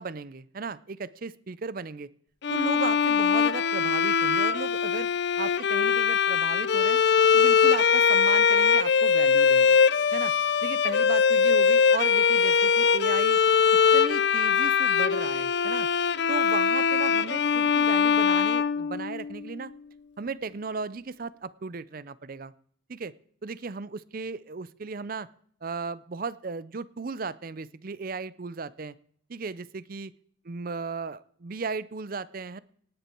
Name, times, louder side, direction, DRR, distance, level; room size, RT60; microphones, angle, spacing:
voice 1, 0.0-2.1 2.5-5.1 5.4-7.0 7.3-9.8 10.1-10.3 10.6-13.4 13.9-15.9 16.3-19.7 20.2-22.5 22.9-23.1 23.4-25.3 25.6-28.9 29.3-30.1 30.5-32.6, right 4 dB, 45° right, 18 dB, 0.5 m, -36 dB
Bowed string instrument, 2.4-19.4, left 6 dB, 60° left, 0.5 m, -22 dB
18.5 x 10.0 x 4.5 m, 0.63 s
head